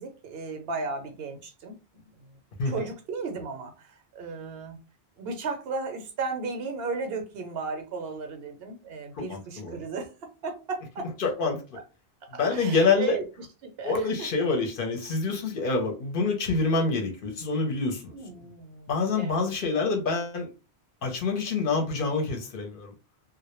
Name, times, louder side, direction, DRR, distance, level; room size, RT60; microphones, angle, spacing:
voice 1, 0.0-2.3 2.7-4.8 5.2-10.1 10.4-11.1 12.3-13.2 13.6-14.1 18.1-19.4 19.7-19.8, right 4 dB, 70° right, 0.8 m, -35 dB
voice 2, 9.1-9.8 11.2-11.6 12.4-13.2 13.8-18.1 18.9-20.5 21.0-22.9, left 4 dB, 60° left, 0.7 m, -26 dB
2.1 x 2.0 x 2.9 m
omnidirectional pair, 1.1 m